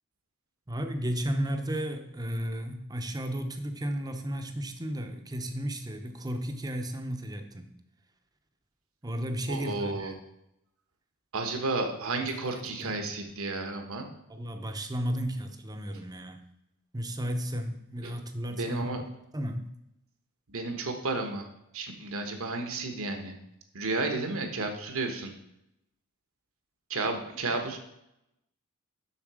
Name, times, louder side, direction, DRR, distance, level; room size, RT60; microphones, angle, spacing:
voice 1, 0.7-7.7 9.0-10.1 12.2-13.1 14.3-16.4 16.9-18.8 19.3-19.7, equal, 15° right, 6 dB, 0.8 m, -34 dB
voice 2, 9.5-10.1 11.3-14.0 18.6-19.0 20.5-21.5 21.7-23.3 23.7-25.3 26.9-27.8, right 3 dB, 65° right, 5 dB, 1.3 m, -32 dB
7.3 x 6.5 x 4.9 m, 0.83 s
head